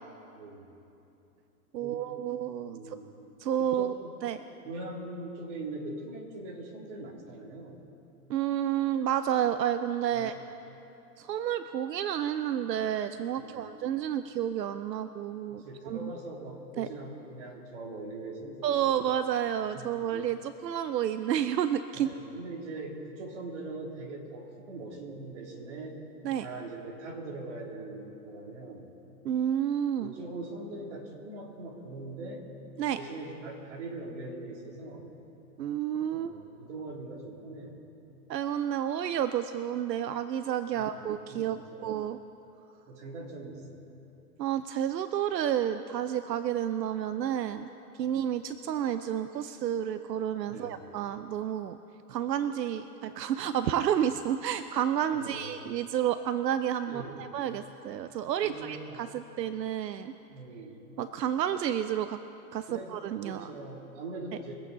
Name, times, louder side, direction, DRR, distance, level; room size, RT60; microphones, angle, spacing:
voice 1, 0.3-0.7 1.8-2.1 2.6-3.1 3.6-4.1 4.6-7.8 10.1-10.5 13.3-13.7 15.5-19.1 19.7-20.2 21.9-26.0 26.4-28.9 30.0-32.5 33.0-35.1 36.1-37.8 40.7-41.9 42.9-43.9 48.0-48.1 50.5-50.8 55.1-55.6 56.9-57.3 58.4-59.1 60.3-60.8 62.7-62.9 63.2-64.5, right 2 dB, 45° right, -1 dB, 3.0 m, -42 dB
voice 2, 1.7-3.0 3.4-3.9 4.2-4.4 8.3-10.3 11.2-16.1 16.8-16.9 18.6-22.1 26.2-26.5 29.2-30.1 32.8-33.0 35.6-36.3 38.3-42.2 44.4-47.7 48.0-51.8 52.1-60.1 61.0-62.2 62.5-63.5, right 10 dB, 85° right, 11 dB, 0.7 m, -30 dB
24.0 x 8.6 x 4.0 m, 2.8 s
hypercardioid pair, 155°, 48 cm